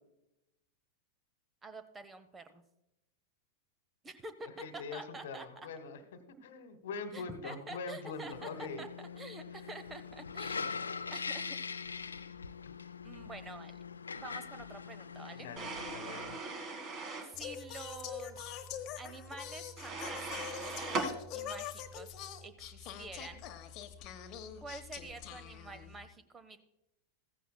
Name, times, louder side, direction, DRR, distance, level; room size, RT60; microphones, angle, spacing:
voice 1, 1.6-2.6 4.0-4.5 4.7-5.5 7.1-8.5 8.8-10.8 11.1-11.6 12.1-12.3 13.0-13.8 14.1-15.5 17.2-18.6 18.9-20.8 21.3-23.5 24.6-26.6, right 3 dB, 15° right, 11 dB, 0.8 m, -48 dB
voice 2, 4.6-8.8 15.3-16.4, left 4 dB, 60° left, 11 dB, 1.2 m, -43 dB
sound 1, 8.3-16.4, left 5 dB, 75° left, 0.5 m, -42 dB
sound 2, 15.6-17.3 19.8-21.1, right 3 dB, 35° right, 1.7 m, -38 dB
Singing, 17.3-26.1, left 8 dB, 35° left, 1.0 m, -44 dB
15.0 x 15.0 x 2.2 m, 0.90 s
figure-of-eight pair, 90°, 0 cm